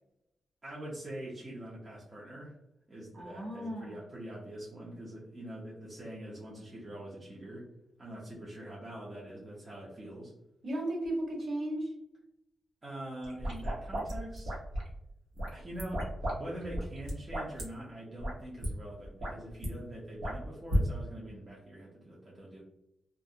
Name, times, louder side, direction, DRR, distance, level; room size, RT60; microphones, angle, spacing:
voice 1, 0.6-2.6 2.9-7.7 8.0-10.3 12.8-14.6 15.5-22.6, right 1 dB, 25° right, -6 dB, 0.5 m, -44 dB
voice 2, 3.1-4.0 10.6-11.9, right 1 dB, 45° right, -2 dB, 0.9 m, -35 dB
sound 1, 13.2-14.9 15.4-16.4 16.6-17.6 18.2-18.3 18.6-18.7 19.0-19.7 20.2-20.8, equal, 75° right, 0.9 m, -33 dB
2.4 x 2.0 x 2.6 m, 0.81 s
wide cardioid pair, 165°, 0 cm